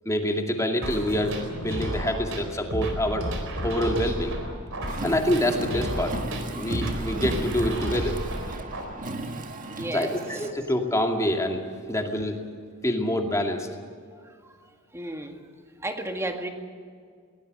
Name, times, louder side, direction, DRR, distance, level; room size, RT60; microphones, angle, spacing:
voice 1, 0.0-3.3 3.6-4.4 5.0-6.1 6.6-8.2 9.9-11.6 11.9-12.4 12.8-13.7, left 1 dB, 15° left, 3 dB, 2.4 m, -26 dB
sound 1, 0.8-8.8, right 1 dB, 60° right, 4.3 m, -32 dB
Car, 4.9-10.5, right 2 dB, 40° right, 1.7 m, -35 dB
voice 2, 9.7-10.5 14.2-15.4 15.8-16.5, right 1 dB, 15° right, 4 dB, 2.0 m, -34 dB
21.5 x 19.0 x 8.0 m, 2.1 s
head